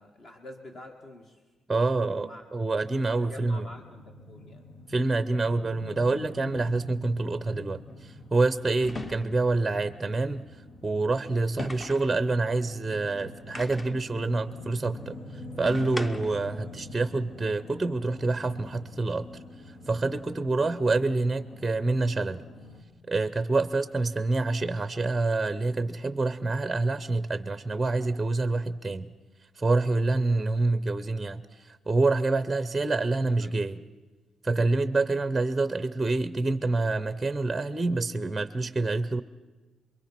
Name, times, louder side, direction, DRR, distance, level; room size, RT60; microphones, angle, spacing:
voice 1, 0.0-1.4 1.7-2.8 3.2-4.7 33.4-33.5, left 1 dB, 40° left, 3 dB, 1.9 m, -47 dB
voice 2, 1.7-3.7 4.9-10.4 10.8-15.2 15.6-19.3 19.7-22.4 23.1-29.1 29.6-33.8 34.4-39.2, right 3 dB, 10° right, 13 dB, 0.7 m, -27 dB
sound 1, 3.2-22.8, left 2 dB, 85° left, 2.9 m, -46 dB
sound 2, 6.6-6.8 8.8-9.6 11.6-12.2 13.5-14.1 15.6-16.5, left 2 dB, 15° left, 0.8 m, -38 dB
27.5 x 22.5 x 6.0 m, 1.2 s
cardioid pair, 145°, 0 cm